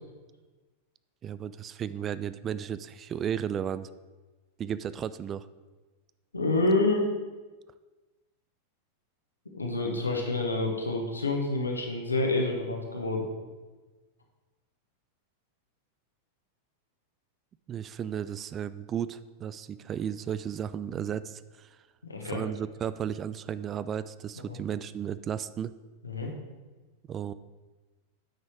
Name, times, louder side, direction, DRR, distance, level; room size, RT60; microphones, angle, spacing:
voice 1, 1.2-3.9 4.6-5.5 17.7-21.8 22.2-25.7 27.1-27.3, right 9 dB, 25° right, 15 dB, 0.3 m, -34 dB
voice 2, 6.3-7.1 9.5-13.3 22.0-22.4 24.5-24.6 26.0-26.3, left 2 dB, 80° left, 1 dB, 1.5 m, -28 dB
9.5 x 6.2 x 4.7 m, 1.3 s
figure-of-eight pair, 90°, 0 cm